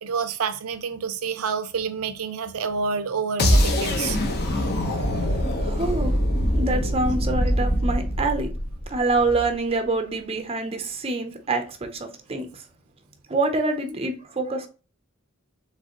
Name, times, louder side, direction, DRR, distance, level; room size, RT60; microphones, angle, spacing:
voice 1, 0.0-4.2, right 5 dB, 75° right, 0.6 m, -28 dB
sound 1, 3.4-9.4, equal, 50° left, 0.9 m, -23 dB
voice 2, 4.8-6.2 6.6-8.5 8.9-12.6 13.3-14.7, right 3 dB, 30° right, 0.6 m, -26 dB
4.9 x 3.3 x 2.9 m
head